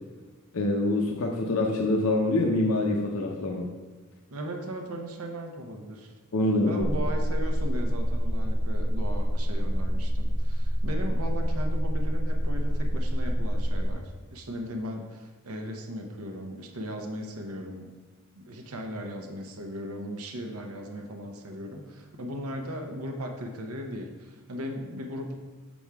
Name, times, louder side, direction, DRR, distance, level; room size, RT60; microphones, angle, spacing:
voice 1, 0.5-3.7 6.3-6.8, left 2 dB, 80° left, 1 dB, 0.7 m, -25 dB
voice 2, 4.3-6.1 6.7-17.9 18.4-25.3, equal, 75° right, 4 dB, 0.9 m, -37 dB
sound 1, 6.8-13.9, equal, 5° right, 1.1 m, -26 dB
7.0 x 6.2 x 3.5 m, 1.4 s
head